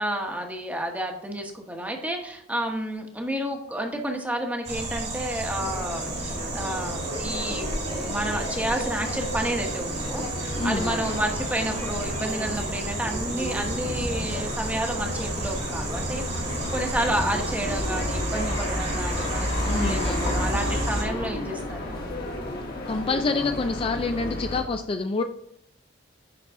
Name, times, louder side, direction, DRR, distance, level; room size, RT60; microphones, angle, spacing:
voice 1, 0.0-7.7 8.0-16.3 16.7-22.1, right 1 dB, 10° right, 2 dB, 1.0 m, -30 dB
sound 1, 4.6-21.0, right 1 dB, 35° right, 1.5 m, -31 dB
sound 2, 5.5-24.6, left 1 dB, 55° left, 1.6 m, -33 dB
voice 2, 10.6-11.0 19.7-20.3 22.9-25.2, left 3 dB, 30° left, 7 dB, 0.3 m, -27 dB
10.0 x 3.9 x 3.6 m, 0.74 s
head